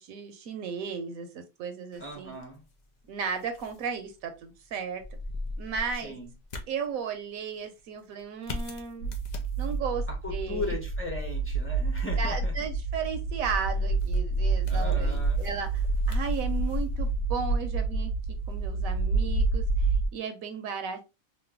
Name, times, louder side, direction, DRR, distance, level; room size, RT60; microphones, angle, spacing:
voice 1, 0.0-2.3 3.1-5.0 5.6-6.1 6.7-9.2 9.6-10.0 10.3-10.7 12.2-18.1 18.5-21.1, right 6 dB, 75° right, 1.0 m, -35 dB
sound 1, 1.9-20.0, left 1 dB, 65° left, 0.4 m, -44 dB
voice 2, 2.0-2.6 6.0-6.3 10.1-12.5 14.7-15.4, left 2 dB, 10° left, 0.6 m, -37 dB
sound 2, 9.0-20.1, right 3 dB, 85° left, 1.2 m, -28 dB
3.1 x 2.1 x 3.3 m
omnidirectional pair, 1.5 m